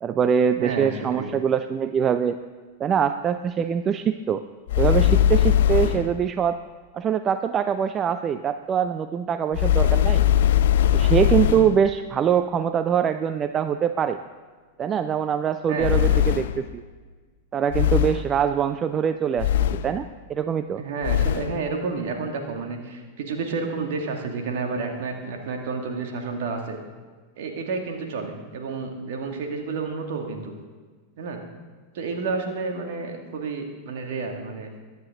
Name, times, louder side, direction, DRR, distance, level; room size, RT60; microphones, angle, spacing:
voice 1, 0.0-2.4 2.8-4.4 4.8-6.6 6.9-10.2 10.9-14.2 14.8-16.8 17.5-19.5 19.8-20.8, right 8 dB, 25° right, 11 dB, 0.5 m, -23 dB
voice 2, 0.6-1.3 15.7-16.2 20.8-26.8 27.4-30.5 31.2-31.4 31.9-34.7, right 4 dB, 55° right, 3 dB, 2.3 m, -30 dB
sound 1, 4.7-6.2 9.5-11.8 15.8-16.7 17.7-18.4 19.4-20.0 21.0-21.6, left 11 dB, 55° left, 0.4 m, -20 dB
22.5 x 9.5 x 3.8 m, 1.5 s
figure-of-eight pair, 90°, 0 cm